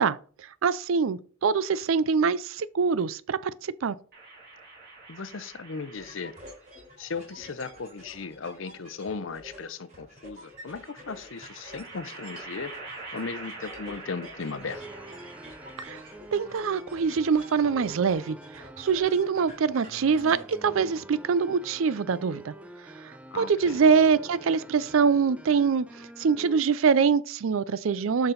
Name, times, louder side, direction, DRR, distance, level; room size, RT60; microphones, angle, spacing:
voice 1, 0.0-4.0 15.8-16.0 16.3-22.5 23.0-28.3, right 5 dB, 75° right, 0.4 m, -24 dB
sound 1, 4.1-6.8 7.9-8.9 10.5-16.5, right 3 dB, 50° right, 3.3 m, -46 dB
voice 2, 5.1-6.3 7.0-12.7 13.1-14.8 23.3-23.8, left 4 dB, 70° left, 0.7 m, -37 dB
sound 2, 5.9-20.6, equal, 35° right, 3.1 m, -48 dB
sound 3, 14.6-26.6, right 1 dB, 5° right, 0.4 m, -46 dB
6.8 x 6.0 x 3.9 m
head